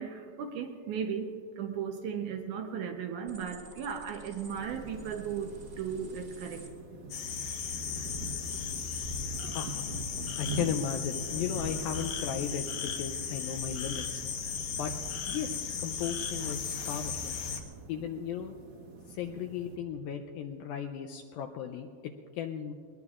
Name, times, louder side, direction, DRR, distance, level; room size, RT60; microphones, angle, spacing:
voice 1, 0.0-6.7, right 7 dB, 80° right, 4 dB, 1.8 m, -36 dB
sound 1, 3.3-6.7, right 1 dB, 35° right, 1.5 m, -51 dB
sound 2, 4.5-19.8, right 2 dB, 60° right, 1.8 m, -45 dB
sound 3, 7.1-17.6, left 6 dB, 65° left, 2.0 m, -36 dB
voice 2, 9.5-9.9 10.4-14.2 14.8-14.9 15.3-17.4 17.9-18.6 19.1-21.9 22.4-22.7, left 8 dB, 80° left, 3 dB, 2.2 m, -36 dB
22.0 x 20.5 x 2.4 m, 2.3 s
omnidirectional pair, 4.5 m